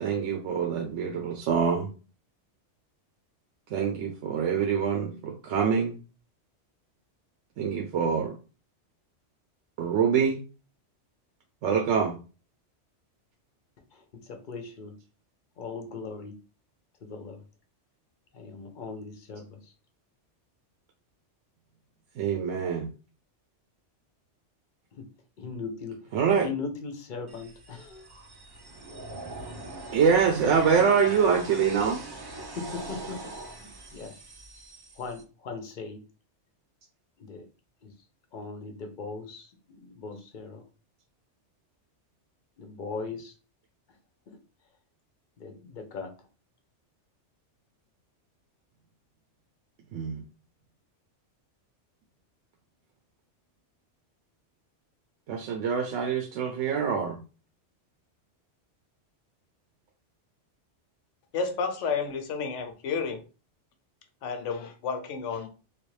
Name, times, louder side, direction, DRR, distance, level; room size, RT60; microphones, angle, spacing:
voice 1, 0.0-1.9 3.7-5.9 7.6-8.3 9.8-10.4 11.6-12.1 22.2-22.9 26.1-26.5 29.9-32.0 49.9-50.2 55.3-57.2, right 6 dB, 80° right, 0.9 m, -25 dB
voice 2, 13.9-15.0 15.6-16.4 17.0-17.4 18.3-19.6 24.9-25.1 25.4-26.0 26.4-28.0 32.4-33.3 33.9-34.1 35.0-36.0 37.2-37.4 37.8-37.9 38.3-40.6 42.6-43.3 44.3-44.4 45.4-46.1, left 4 dB, 55° left, 0.6 m, -39 dB
sound 1, 27.3-35.2, right 2 dB, 40° right, 0.3 m, -42 dB
voice 3, 61.3-63.2 64.2-65.5, left 5 dB, 85° left, 1.0 m, -31 dB
3.2 x 2.4 x 3.1 m
omnidirectional pair, 1.2 m